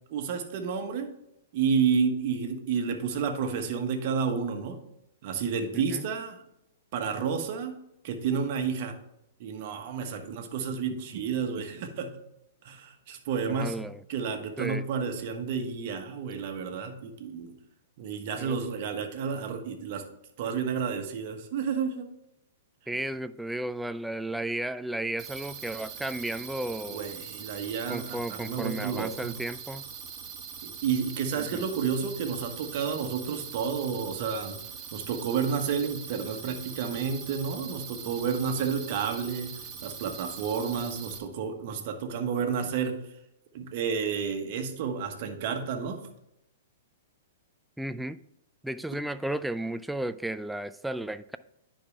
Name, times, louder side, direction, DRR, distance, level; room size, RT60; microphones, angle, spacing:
voice 1, 0.1-1.1 1.5-4.8 5.2-6.4 6.9-7.8 8.0-9.0 9.4-12.1 12.6-17.6 18.0-20.0 20.4-22.1 26.9-29.4 30.6-34.6 34.9-43.0 43.5-46.0, right 6 dB, 50° right, 5 dB, 1.3 m, -31 dB
voice 2, 5.7-6.1 13.5-14.0 14.6-14.8 18.4-18.6 22.9-27.2 27.9-29.8 31.4-31.6 40.8-40.9 47.8-48.2 48.6-51.4, right 1 dB, 5° right, 14 dB, 0.3 m, -34 dB
sound 1, 25.2-41.2, right 7 dB, 30° right, 1.8 m, -42 dB
10.0 x 5.6 x 3.5 m, 0.83 s
figure-of-eight pair, 110°, 0 cm